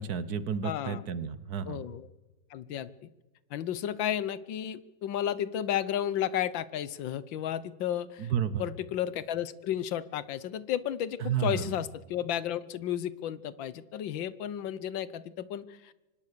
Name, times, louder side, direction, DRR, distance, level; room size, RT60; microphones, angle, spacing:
voice 1, 0.0-1.8 8.2-8.6 11.2-11.7, right 7 dB, 60° right, 16 dB, 1.3 m, -31 dB
voice 2, 0.6-1.1 1.6-2.1 2.5-2.9 3.5-8.3 8.6-15.9, left 10 dB, 80° left, 17 dB, 1.6 m, -33 dB
25.0 x 19.5 x 6.7 m, 1.2 s
omnidirectional pair, 2.1 m